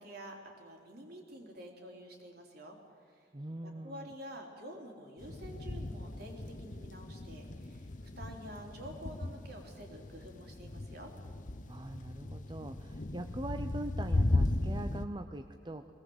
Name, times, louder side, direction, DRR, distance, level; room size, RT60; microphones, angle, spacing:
voice 1, 0.0-2.8 3.0-3.3 3.6-7.9 8.2-11.1, equal, 55° right, 1 dB, 3.6 m, -49 dB
voice 2, 3.3-4.1 11.7-15.9, right 1 dB, 25° right, 7 dB, 0.7 m, -42 dB
sound 1, 5.2-15.0, left 2 dB, 45° left, 0.9 m, -36 dB
21.0 x 18.5 x 8.0 m, 2.2 s
head